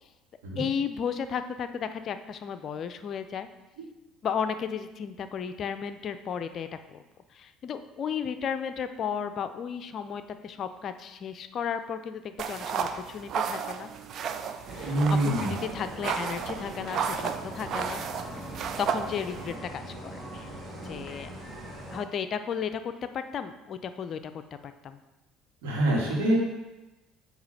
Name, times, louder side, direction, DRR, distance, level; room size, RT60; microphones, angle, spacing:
voice 1, 0.6-3.5 4.2-7.0 7.3-13.9 14.7-18.0 18.8-20.5 20.8-21.3 21.9-25.0, left 7 dB, 45° left, 10 dB, 0.5 m, -34 dB
sound 1, 12.4-19.6, right 7 dB, 50° right, 0.5 m, -33 dB
sound 2, 14.7-22.0, right 1 dB, 35° right, 1.8 m, -41 dB
voice 2, 14.8-15.6 25.6-26.4, right 1 dB, 70° right, -2 dB, 1.8 m, -25 dB
8.7 x 3.0 x 5.6 m, 1.1 s
hypercardioid pair, 60°, 0 cm